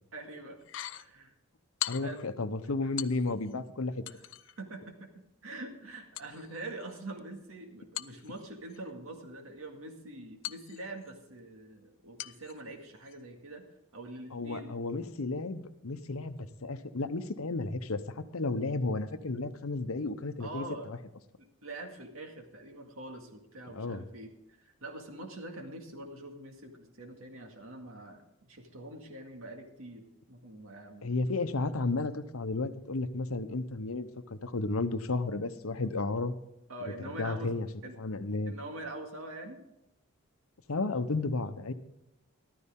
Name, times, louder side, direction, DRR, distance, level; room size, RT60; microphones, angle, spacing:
voice 1, 0.1-0.6 0.9-1.3 2.0-2.2 2.8-2.9 4.1-4.3 4.6-5.1 5.4-13.6 13.9-14.8 20.4-20.9 21.4-24.3 24.6-31.3 36.7-37.6 37.8-38.0 38.5-39.6, right 2 dB, 75° right, 3 dB, 2.1 m, -44 dB
sound 1, 0.6-1.1 1.8-2.3 3.0-3.5 4.1-4.6 6.1-7.2 7.9-8.8 10.4-11.2 12.2-12.6 13.0-13.2, left 14 dB, 60° left, 0.4 m, -41 dB
voice 2, 1.9-4.0 14.3-21.0 23.7-24.0 31.0-36.3 37.2-37.7 38.0-38.5 40.7-41.7, left 3 dB, 80° left, 11 dB, 0.9 m, -33 dB
14.0 x 12.5 x 3.7 m, 0.85 s
head